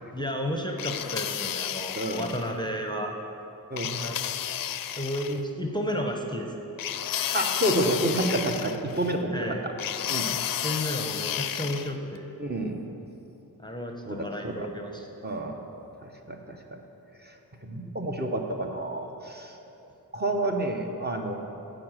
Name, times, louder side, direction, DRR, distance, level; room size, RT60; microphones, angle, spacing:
voice 1, 0.1-3.1 4.0-4.2 5.0-6.5 9.3-9.6 10.6-12.3 13.6-15.1, equal, 10° left, 2 dB, 0.8 m, -32 dB
sound 1, 0.8-2.5 3.8-5.4 6.8-9.1 9.8-11.9, left 10 dB, 60° left, 0.5 m, -32 dB
voice 2, 1.9-2.3 3.7-4.0 7.3-9.7 10.1-10.3 12.4-12.8 14.1-14.7 15.2-15.5 16.0-16.8 17.3-17.4 17.6-19.5 20.1-21.3, right 1 dB, 25° right, 2 dB, 0.9 m, -29 dB
8.6 x 5.1 x 6.3 m, 2.9 s
cardioid pair, 40°, 38 cm